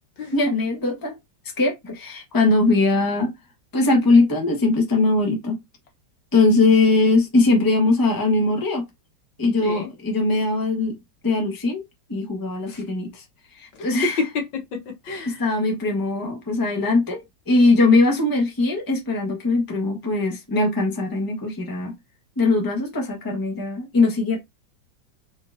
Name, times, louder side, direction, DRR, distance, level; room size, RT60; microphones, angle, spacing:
voice 1, 0.3-1.1 1.6-3.3 3.7-5.6 6.3-8.8 9.4-11.0 11.2-11.8 12.1-13.2 13.8-14.2 15.3-17.2 17.5-21.9 22.4-24.4, left 3 dB, 15° left, 0.9 m, -20 dB
voice 2, 13.7-15.4, left 3 dB, 75° left, 1.8 m, -29 dB
4.2 x 4.0 x 2.5 m
omnidirectional pair, 2.1 m